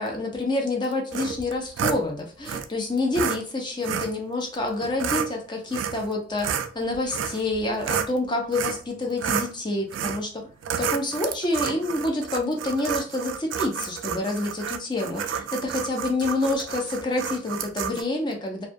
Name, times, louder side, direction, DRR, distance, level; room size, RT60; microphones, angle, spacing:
voice 1, 0.0-10.5 10.8-18.7, left 2 dB, 25° left, 1 dB, 0.5 m, -28 dB
sound 1, 1.1-2.0 2.4-2.7 3.1-3.4 3.8-4.1 4.8-5.3 5.7-6.1 6.4-8.1 8.5-8.8 9.2-9.5 9.9-10.2 10.6-18.0, right 8 dB, 80° right, 0.3 m, -30 dB
2.3 x 2.2 x 2.5 m, 0.39 s
head